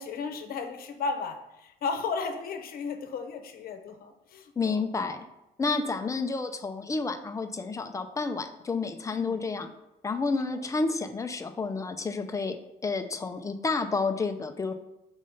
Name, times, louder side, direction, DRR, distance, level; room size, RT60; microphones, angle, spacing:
voice 1, 0.0-4.8 9.1-9.4, left 4 dB, 60° left, 6 dB, 0.9 m, -34 dB
voice 2, 4.6-5.2 5.6-9.7 10.0-12.6 12.8-14.7, left 4 dB, 20° left, 7 dB, 0.6 m, -30 dB
5.3 x 3.6 x 5.4 m, 0.90 s
cardioid pair, 110°, 17 cm